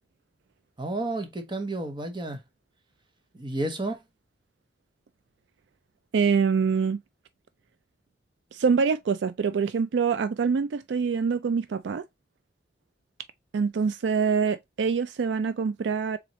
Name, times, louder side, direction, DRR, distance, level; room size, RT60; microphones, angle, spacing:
voice 1, 0.8-2.4 3.3-4.0, right 2 dB, 25° right, 1.0 m, -31 dB
voice 2, 6.1-7.0 8.5-12.0 13.5-16.2, right 5 dB, 70° right, 0.4 m, -25 dB
4.2 x 3.8 x 3.0 m
head